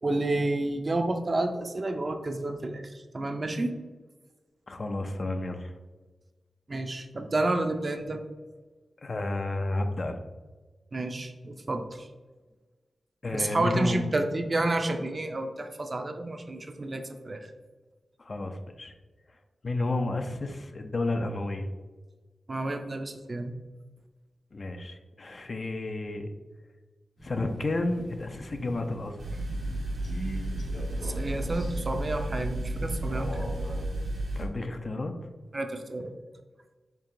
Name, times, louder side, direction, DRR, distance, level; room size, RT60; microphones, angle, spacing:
voice 1, 0.0-3.8 6.7-8.2 10.9-12.1 13.3-17.5 22.5-23.5 31.0-33.6 35.5-36.1, right 2 dB, 45° right, 6 dB, 0.4 m, -30 dB
voice 2, 4.7-5.8 9.0-10.2 13.2-14.1 18.2-18.9 19.6-21.7 24.5-26.3 27.2-29.2 34.3-35.1, left 2 dB, 50° left, 6 dB, 0.4 m, -31 dB
Crow, 27.2-33.8, equal, 80° left, 1.3 m, -42 dB
sound 1, 29.2-34.4, right 1 dB, 85° right, 0.8 m, -33 dB
4.5 x 2.8 x 2.6 m, 1.3 s
cardioid pair, 55°, 0 cm